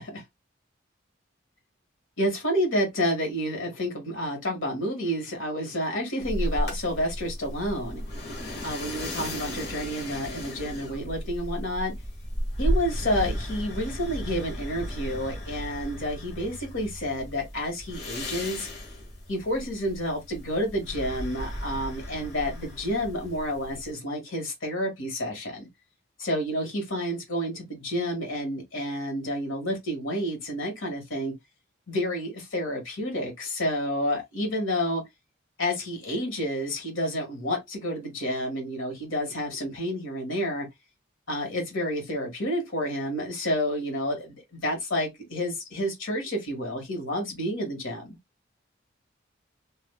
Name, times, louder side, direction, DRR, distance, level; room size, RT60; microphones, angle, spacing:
voice 1, 2.2-8.0 8.6-11.9 12.6-18.7 19.3-25.7 26.2-31.3 31.9-35.0 35.6-40.7 41.3-48.2, equal, 90° left, 1.5 m, -29 dB
sound 1, 6.2-23.9, equal, 55° left, 1.3 m, -34 dB
3.4 x 2.7 x 2.2 m
head